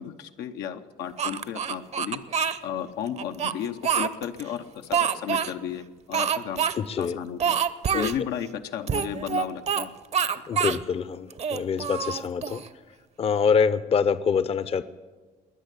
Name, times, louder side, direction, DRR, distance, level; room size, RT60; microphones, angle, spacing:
voice 1, 0.0-2.2 2.6-6.7 7.0-7.6 7.9-9.9, left 9 dB, 85° left, 6 dB, 0.9 m, -33 dB
Speech, 1.2-2.6 3.2-4.4 4.9-5.5 6.1-6.7 7.0-7.1 7.4-8.2 8.9-9.9 10.1-10.8 11.3-12.7, right 7 dB, 40° right, 0.7 m, -26 dB
voice 2, 6.8-7.2 7.9-8.1 10.5-12.6 13.2-14.8, left 6 dB, 35° left, 14 dB, 0.6 m, -25 dB
21.5 x 8.2 x 8.3 m, 1.4 s
cardioid pair, 110°, 17 cm